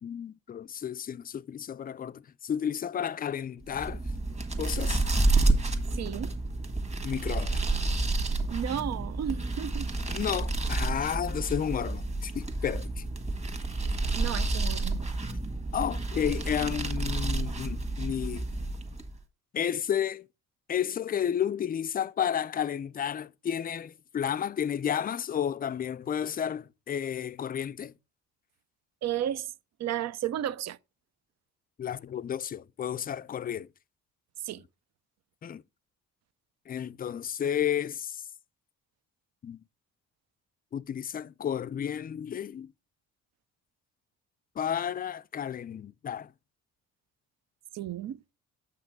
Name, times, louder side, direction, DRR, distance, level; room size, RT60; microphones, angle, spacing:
voice 1, 0.0-4.0 4.6-5.0 7.0-7.6 10.1-13.0 15.7-18.5 19.5-20.3 20.7-27.9 31.8-33.7 35.4-35.6 36.7-38.2 39.4-39.6 40.7-42.7 44.6-46.3, left 9 dB, 30° left, 0.4 m, -32 dB
sound 1, 3.7-19.2, right 2 dB, 20° right, 1.7 m, -30 dB
voice 2, 5.9-6.3 8.5-9.9 14.2-15.0 29.0-29.5 29.8-30.8 34.4-34.6 47.7-48.2, right 10 dB, 60° right, 0.6 m, -33 dB
7.8 x 5.8 x 4.6 m
cardioid pair, 90°, 30 cm